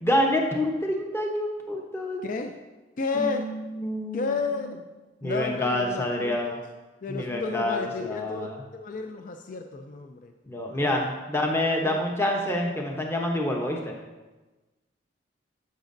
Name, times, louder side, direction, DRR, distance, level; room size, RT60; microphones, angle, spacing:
voice 1, 0.0-2.2 3.1-4.7 5.2-6.6 7.1-8.6 10.5-13.9, left 1 dB, 15° left, 0 dB, 0.8 m, -27 dB
voice 2, 2.2-2.6 3.0-3.5 4.1-4.8 5.2-6.6 7.0-10.3 10.7-11.1 11.8-12.0, left 4 dB, 45° left, 5 dB, 0.4 m, -32 dB
10.5 x 7.3 x 2.6 m, 1.2 s
head